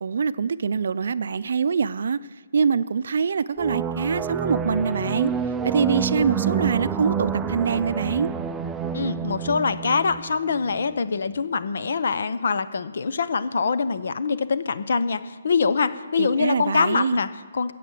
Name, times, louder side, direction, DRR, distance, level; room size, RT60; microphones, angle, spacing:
voice 1, 0.0-2.2 2.5-5.3 5.6-8.3 16.2-17.2, right 6 dB, 65° right, 16 dB, 0.5 m, -24 dB
sound 1, 3.6-11.0, right 7 dB, 10° right, 0.4 m, -28 dB
voice 2, 8.9-17.7, left 5 dB, 65° left, 13 dB, 0.8 m, -24 dB
14.0 x 8.5 x 7.6 m, 1.4 s
hypercardioid pair, 160°, 0 cm